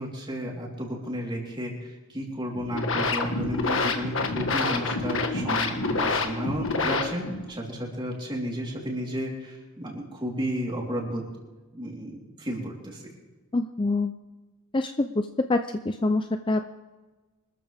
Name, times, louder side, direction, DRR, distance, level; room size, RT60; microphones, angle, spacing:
voice 1, 0.0-11.2 11.7-13.0, equal, 20° right, -2 dB, 3.7 m, -33 dB
sound 1, 2.5-7.5, left 3 dB, 60° left, 1.6 m, -27 dB
voice 2, 13.5-14.1 14.7-15.6 15.9-16.7, left 2 dB, 20° left, 8 dB, 0.5 m, -25 dB
25.0 x 13.5 x 3.5 m, 1.2 s
head